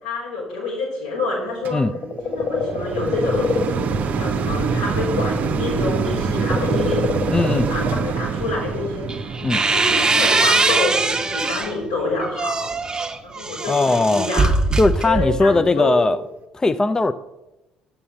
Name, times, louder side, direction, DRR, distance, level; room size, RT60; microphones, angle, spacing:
voice 1, 0.0-1.8 2.2-3.7 4.0-7.1 7.7-12.7 13.2-14.5 15.0-16.1, left 3 dB, 85° left, -5 dB, 3.2 m, -27 dB
sound 1, 1.6-12.9 13.5-13.6, right 5 dB, 50° right, 0.6 m, -26 dB
sound 2, 1.8-5.3 5.6-8.2 9.2-9.3, left 4 dB, 40° left, 0.9 m, -26 dB
voice 2, 7.3-7.7 9.4-9.6 13.7-14.3 14.8-16.2 16.5-17.1, left 2 dB, 20° left, 13 dB, 0.4 m, -18 dB
sound 3, 9.1-11.8 12.2-15.6, right 3 dB, 20° right, 0.8 m, -21 dB
6.9 x 5.8 x 6.3 m, 0.95 s
figure-of-eight pair, 50°, 3 cm